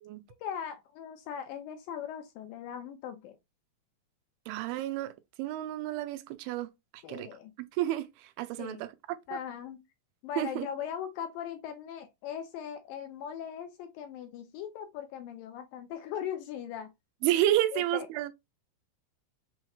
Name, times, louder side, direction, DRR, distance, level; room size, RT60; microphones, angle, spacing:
voice 1, 0.4-3.4 7.0-7.5 8.6-8.8 9.3-9.8 10.2-16.9 17.7-18.1, left 9 dB, 80° left, 2.2 m, -39 dB
voice 2, 4.5-6.7 6.9-7.3 7.7-8.9 9.3-9.4 10.4-10.7 17.2-18.3, right 13 dB, 90° right, 2.5 m, -30 dB
6.3 x 3.0 x 2.3 m
omnidirectional pair, 4.4 m